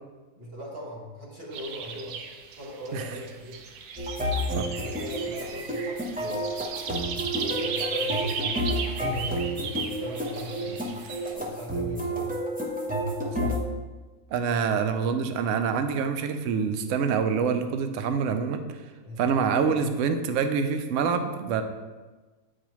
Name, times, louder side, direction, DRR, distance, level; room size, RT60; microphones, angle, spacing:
voice 1, 0.4-2.2 2.6-3.6 4.7-6.6 7.4-9.3 9.7-11.0 11.3-12.3 14.5-14.6 19.0-19.2, equal, 45° right, -4 dB, 1.3 m, -39 dB
sound 1, 1.5-11.3, right 6 dB, 90° right, 1.1 m, -36 dB
sound 2, 4.0-13.6, equal, 10° right, 0.5 m, -30 dB
voice 2, 14.3-18.6 19.2-21.6, right 6 dB, 65° right, 8 dB, 0.8 m, -26 dB
8.4 x 4.7 x 3.0 m, 1.3 s
omnidirectional pair, 1.6 m